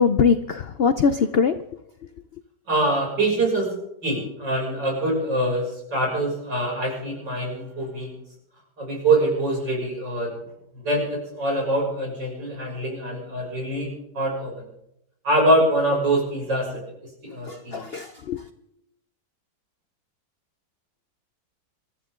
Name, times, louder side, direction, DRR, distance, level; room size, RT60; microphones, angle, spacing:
voice 1, 0.0-1.5 17.5-18.4, left 6 dB, 75° left, 10 dB, 0.5 m, -21 dB
voice 2, 2.7-3.8 4.0-8.1 8.8-10.3 10.8-14.7 15.2-16.7 17.2-17.9, right 1 dB, 85° right, -2 dB, 7.3 m, -24 dB
26.5 x 13.5 x 3.7 m, 0.83 s
omnidirectional pair, 1.9 m